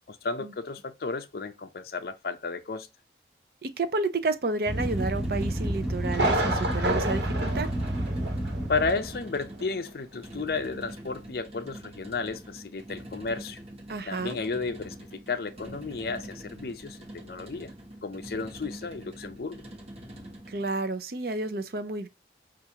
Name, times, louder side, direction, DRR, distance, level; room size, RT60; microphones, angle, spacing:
voice 1, 0.1-2.9 8.7-13.6 14.1-17.7 18.0-19.6, left 4 dB, 55° left, 0.5 m, -33 dB
voice 2, 3.6-7.7 13.9-14.4 20.5-22.1, right 3 dB, 55° right, 0.5 m, -30 dB
sound 1, 4.6-20.8, right 1 dB, 35° right, 1.1 m, -45 dB
sound 2, 4.7-9.3, right 1 dB, 5° right, 0.6 m, -30 dB
Thunder, 6.1-8.7 9.0-9.1 9.6-9.7, right 1 dB, 80° right, 1.3 m, -29 dB
5.7 x 2.5 x 2.8 m
head